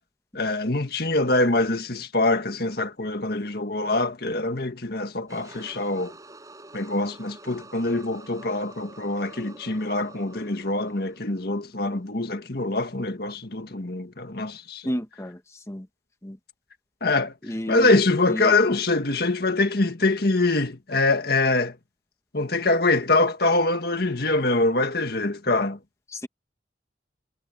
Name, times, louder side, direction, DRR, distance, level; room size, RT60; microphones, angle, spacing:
voice 1, 0.3-6.1 6.7-14.9 17.0-17.3 17.7-21.8 22.3-25.8, left 2 dB, 55° left, 1.9 m, -24 dB
sound 1, 5.3-11.9, right 2 dB, 20° right, 6.2 m, -47 dB
voice 2, 14.8-15.9 16.2-16.4 17.4-18.0 18.3-18.5 26.1-26.3, equal, 15° left, 1.1 m, -32 dB
head